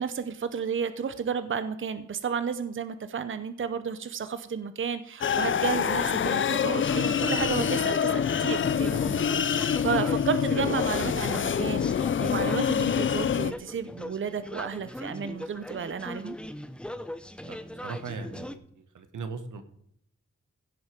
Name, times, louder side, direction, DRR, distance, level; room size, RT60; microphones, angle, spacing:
voice 1, 0.0-16.4, right 6 dB, 40° right, 12 dB, 0.8 m, -32 dB
sound 1, 5.2-13.5, left 8 dB, 45° left, 0.5 m, -26 dB
sound 2, 5.7-18.6, left 1 dB, 5° left, 0.7 m, -40 dB
voice 2, 17.4-19.6, right 4 dB, 90° right, 9 dB, 1.6 m, -39 dB
16.5 x 7.8 x 5.3 m, 0.70 s
wide cardioid pair, 155°, 30 cm